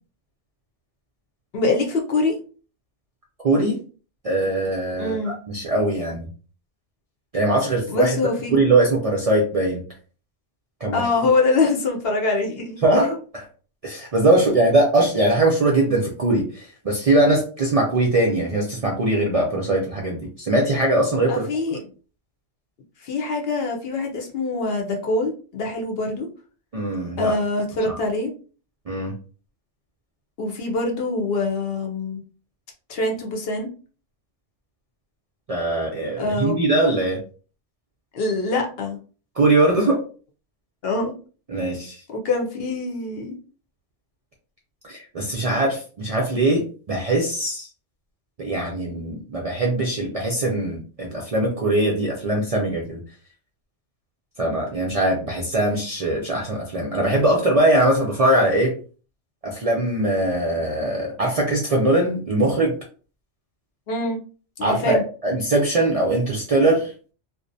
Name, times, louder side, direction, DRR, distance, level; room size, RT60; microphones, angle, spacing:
voice 1, 1.5-2.4 5.0-5.4 7.9-8.6 10.9-12.8 14.5-14.6 21.3-21.8 23.0-26.3 27.2-28.3 30.4-32.2 32.9-33.7 36.2-36.6 38.1-39.0 40.8-41.1 42.1-43.3 63.9-64.2 64.6-65.0, left 3 dB, 65° left, 2 dB, 0.8 m, -24 dB
voice 2, 3.4-3.8 4.2-6.3 7.3-8.2 8.5-9.8 10.8-11.0 12.8-13.4 13.8-21.4 26.7-27.3 27.9-28.0 28.9-29.1 35.5-37.2 39.4-40.0 41.5-42.0 44.8-47.7 48.4-53.0 54.4-58.8 59.4-62.8 64.6-66.9, right 2 dB, 55° right, -1 dB, 0.4 m, -21 dB
2.5 x 2.1 x 2.5 m, 0.38 s
omnidirectional pair, 1.2 m